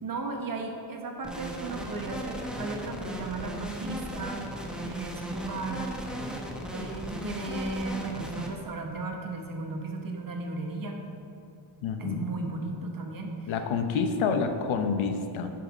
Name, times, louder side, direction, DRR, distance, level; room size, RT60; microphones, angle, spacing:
voice 1, 0.0-4.5 4.8-5.9 6.7-11.0 12.0-13.5, right 3 dB, 45° right, 2 dB, 1.3 m, -35 dB
sound 1, 1.2-8.5, equal, ahead, 0.9 m, -37 dB
voice 2, 11.8-12.3 13.5-15.5, left 5 dB, 80° left, 7 dB, 0.9 m, -28 dB
10.5 x 5.8 x 5.1 m, 2.6 s
cardioid pair, 120°, 47 cm